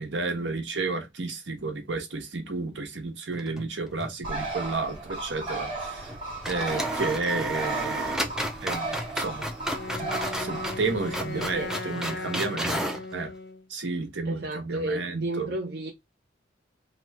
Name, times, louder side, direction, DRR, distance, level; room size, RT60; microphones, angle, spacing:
voice 1, 0.0-6.1 6.5-8.3 8.6-9.5 10.0-12.8 13.1-13.3 13.7-15.5, right 3 dB, 75° right, 1.0 m, -32 dB
sound 1, 3.3-4.2 4.4-4.5 6.0-6.2 6.4-13.1, right 1 dB, 5° right, 0.4 m, -33 dB
Bird, 4.2-11.6, right 3 dB, 30° right, 1.2 m, -35 dB
Wind instrument woodwind instrument, 9.7-13.7, left 3 dB, 60° left, 0.5 m, -37 dB
voice 2, 11.3-11.9 14.2-15.9, right 2 dB, 55° right, 0.6 m, -32 dB
3.0 x 2.2 x 4.0 m
head